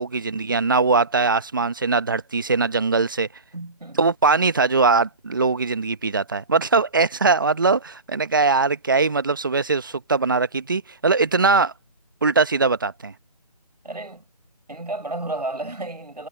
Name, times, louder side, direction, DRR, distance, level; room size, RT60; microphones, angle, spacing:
voice 1, 0.0-3.3 4.0-11.7 12.2-13.1, right 4 dB, 30° right, 1.1 m, -21 dB
voice 2, 3.5-4.0 13.8-14.3 14.7-16.3, right 2 dB, 80° right, 7.3 m, -32 dB
figure-of-eight pair, 170°, 21 cm